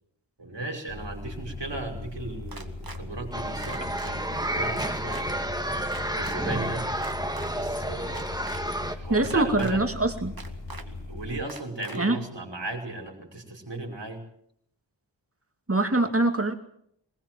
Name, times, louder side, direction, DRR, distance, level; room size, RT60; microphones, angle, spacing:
voice 1, 0.4-5.5 6.1-6.9 7.5-8.3 8.9-9.8 10.9-14.2, right 2 dB, 70° right, 2 dB, 5.4 m, -36 dB
sound 1, 0.9-11.4, left 3 dB, 80° left, 4.2 m, -39 dB
sound 2, 2.5-3.0 3.6-4.1 4.8-5.2 5.9-6.4 7.0-7.5 8.1-8.6 9.2-9.7 10.4-10.8 11.5-12.0, right 3 dB, 50° right, 2.1 m, -42 dB
sound 3, 3.3-9.0, right 1 dB, 10° right, 1.9 m, -30 dB
voice 2, 9.1-10.3 12.0-12.2 15.7-16.5, right 2 dB, 30° right, 6 dB, 2.5 m, -23 dB
20.5 x 20.5 x 7.6 m, 0.71 s
wide cardioid pair, 60°, 44 cm